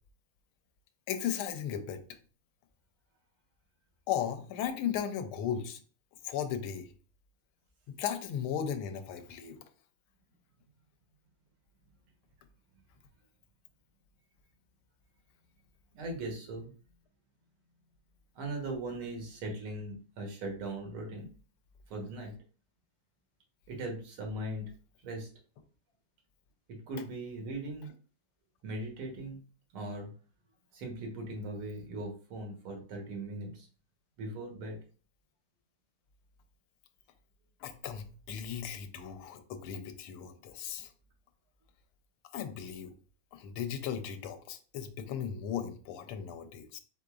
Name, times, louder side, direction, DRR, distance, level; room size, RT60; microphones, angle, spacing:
voice 1, 1.1-2.0 4.1-5.8 6.2-6.9 7.9-9.6 37.6-40.9 42.3-42.9 43.3-46.8, left 9 dB, 85° left, 8 dB, 1.5 m, -36 dB
voice 2, 15.9-16.7 18.4-21.3 21.9-22.3 23.7-24.7 25.0-25.3 26.9-27.9 28.6-29.4 29.7-30.1 30.7-33.7 34.2-34.8, right 2 dB, 80° right, 2 dB, 2.0 m, -39 dB
5.1 x 3.8 x 2.4 m, 0.39 s
omnidirectional pair, 2.3 m